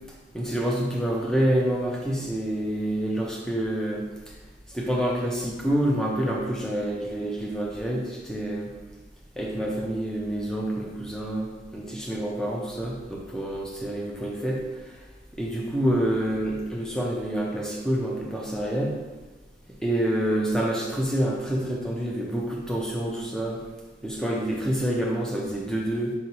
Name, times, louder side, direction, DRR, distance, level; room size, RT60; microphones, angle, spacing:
voice 1, 0.3-4.3 4.7-8.7 9.4-14.6 15.4-19.0 19.8-23.6 24.0-26.1, right 1 dB, 5° left, -3 dB, 0.6 m, -27 dB
5.4 x 2.7 x 2.9 m, 1.2 s
head